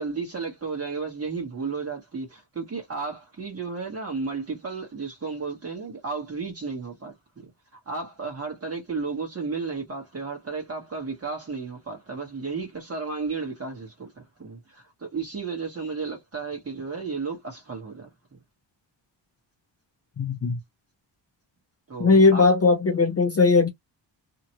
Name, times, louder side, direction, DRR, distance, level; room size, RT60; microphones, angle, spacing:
voice 1, 0.0-18.4 21.9-22.5, right 4 dB, 30° right, 1.3 m, -33 dB
voice 2, 20.2-20.6 22.0-23.7, left 4 dB, 35° left, 0.5 m, -19 dB
2.9 x 2.4 x 2.9 m
wide cardioid pair, 165°, 46 cm